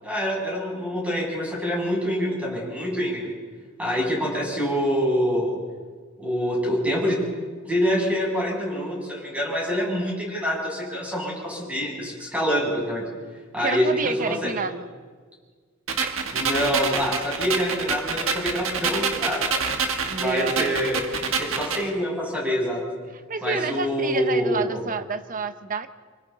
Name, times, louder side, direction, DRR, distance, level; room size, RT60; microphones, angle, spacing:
voice 1, 0.0-3.3 3.8-5.6 6.2-7.2 7.7-13.0 13.5-14.5 16.3-19.6 20.2-21.0 21.3-22.8 23.4-24.8, equal, 5° right, -4 dB, 7.4 m, -26 dB
voice 2, 13.6-14.9 16.0-16.2 20.1-20.8 23.3-25.9, right 4 dB, 40° right, 11 dB, 0.8 m, -29 dB
sound 1, 15.9-21.9, right 5 dB, 75° right, 1.6 m, -27 dB
27.5 x 25.0 x 4.0 m, 1.6 s
head